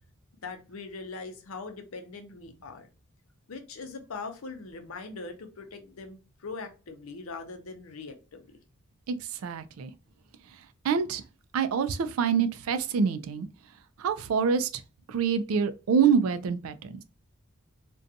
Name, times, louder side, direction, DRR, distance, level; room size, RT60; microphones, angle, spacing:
voice 1, 0.4-2.9 3.5-8.5, left 4 dB, 75° left, 0.6 m, -41 dB
voice 2, 9.4-9.9 10.8-11.2 11.5-13.5 14.0-14.7 15.1-17.0, right 6 dB, 75° right, 0.3 m, -26 dB
2.5 x 2.2 x 2.6 m
head